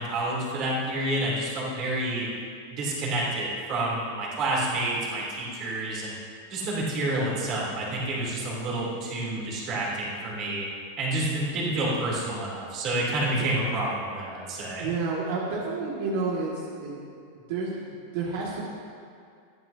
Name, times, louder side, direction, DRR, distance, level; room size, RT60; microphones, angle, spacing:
voice 1, 0.0-2.3 2.7-6.2 6.5-10.7 11.0-14.9, right 1 dB, 30° right, -5 dB, 3.7 m, -29 dB
voice 2, 14.8-16.5 16.8-17.0 17.5-18.6, right 4 dB, 55° right, -5 dB, 2.5 m, -30 dB
21.0 x 13.5 x 3.0 m, 2.3 s
supercardioid pair, 175°, 0 cm